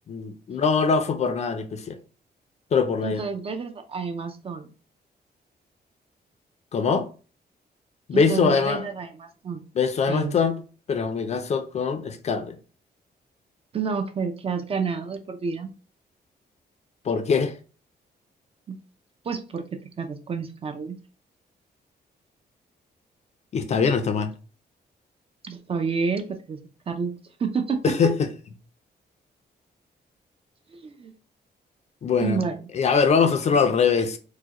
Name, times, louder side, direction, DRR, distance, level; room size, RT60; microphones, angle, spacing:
voice 1, 0.1-2.0 2.7-3.2 6.7-7.1 8.1-8.8 9.8-10.6 10.9-12.6 17.1-17.5 23.5-24.3 27.8-28.3 32.0-32.4 32.7-34.2, left 5 dB, 40° left, 0.4 m, -22 dB
voice 2, 3.0-4.7 8.1-9.6 10.1-10.4 13.7-15.7 18.7-18.8 19.2-21.0 25.4-26.6 26.9-27.1 27.4-28.1 30.7-31.1 32.2-32.7, right 5 dB, 35° right, 0.4 m, -29 dB
4.6 x 2.1 x 2.9 m
wide cardioid pair, 175°, 17 cm